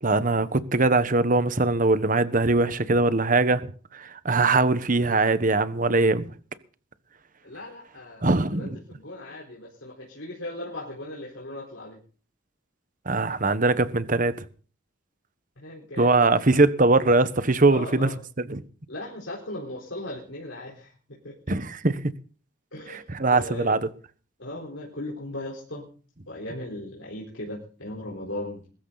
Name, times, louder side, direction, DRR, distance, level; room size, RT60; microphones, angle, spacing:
voice 1, 0.0-6.3 8.2-8.8 13.1-14.3 16.0-18.1 18.4-18.6 21.5-22.0 22.9-23.9, right 3 dB, 45° right, 1.2 m, -22 dB
voice 2, 7.4-8.3 8.6-12.0 15.6-16.1 17.7-18.2 18.9-21.4 22.7-23.7 24.4-25.9 26.3-28.6, left 1 dB, 80° left, 4.2 m, -37 dB
21.5 x 13.5 x 4.1 m
head